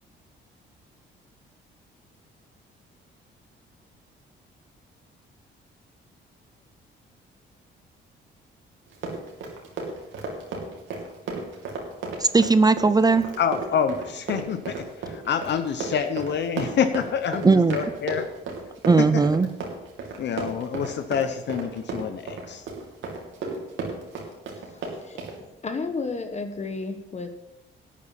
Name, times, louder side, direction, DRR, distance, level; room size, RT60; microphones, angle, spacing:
Run, 8.9-25.4, right 4 dB, 80° right, 2.8 m, -34 dB
voice 1, 12.2-13.3 17.4-17.8 18.8-19.5, right 4 dB, 20° right, 13 dB, 0.5 m, -18 dB
voice 2, 13.4-18.2 19.0-19.2 20.2-22.6, left 7 dB, 60° left, 9 dB, 0.8 m, -27 dB
voice 3, 24.6-25.2 25.6-27.3, left 4 dB, 35° left, 7 dB, 1.2 m, -32 dB
12.0 x 8.4 x 5.8 m, 0.97 s
cardioid pair, 90°, 20 cm